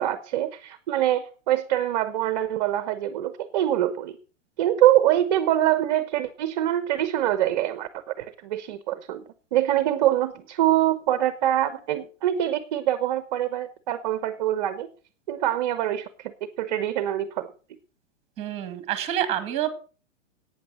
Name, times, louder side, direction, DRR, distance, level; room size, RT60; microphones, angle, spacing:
voice 1, 0.0-4.2 4.6-7.9 8.2-9.2 9.5-14.9 15.3-17.5, right 12 dB, 35° right, 12 dB, 0.9 m, -24 dB
voice 2, 18.4-19.7, right 11 dB, 15° right, 11 dB, 2.0 m, -27 dB
12.0 x 8.9 x 6.3 m, 0.39 s
hypercardioid pair, 165°, 37 cm